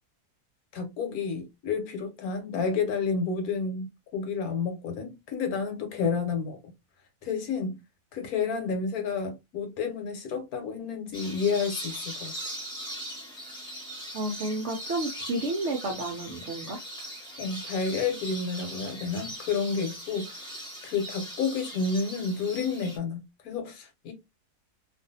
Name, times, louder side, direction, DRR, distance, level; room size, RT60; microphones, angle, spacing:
voice 1, 0.7-6.6 7.2-7.8 8.1-12.3 17.4-20.5 20.8-24.1, left 5 dB, 70° left, 1.2 m, -30 dB
sound 1, 11.1-23.0, right 1 dB, 5° left, 0.8 m, -40 dB
voice 2, 14.1-16.8, right 2 dB, 65° right, 0.7 m, -31 dB
2.5 x 2.5 x 2.6 m
omnidirectional pair, 1.7 m